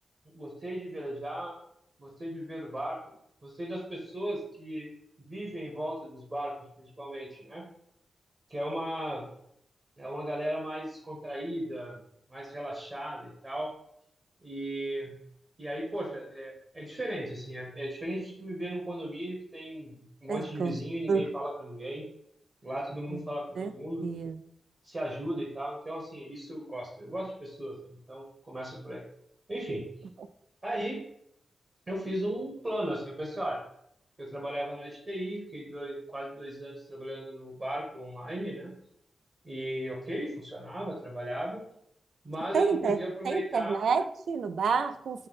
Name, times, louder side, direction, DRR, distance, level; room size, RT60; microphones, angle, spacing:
voice 1, 0.3-1.6 2.0-3.0 3.4-4.9 5.3-7.6 8.5-9.3 10.0-12.0 12.3-13.7 14.4-15.2 15.6-22.0 22.6-24.1 24.8-27.8 28.1-29.0 29.5-29.9 30.6-31.0 31.9-33.6 34.2-38.7 39.4-41.6 42.2-43.8, right 1 dB, 30° right, -1 dB, 1.1 m, -36 dB
voice 2, 20.3-20.7 21.1-21.3 23.6-23.7 24.0-24.3 42.5-43.0 43.3-45.3, right 5 dB, 80° right, 11 dB, 0.3 m, -28 dB
5.4 x 2.2 x 3.9 m, 0.74 s
wide cardioid pair, 105°, 0 cm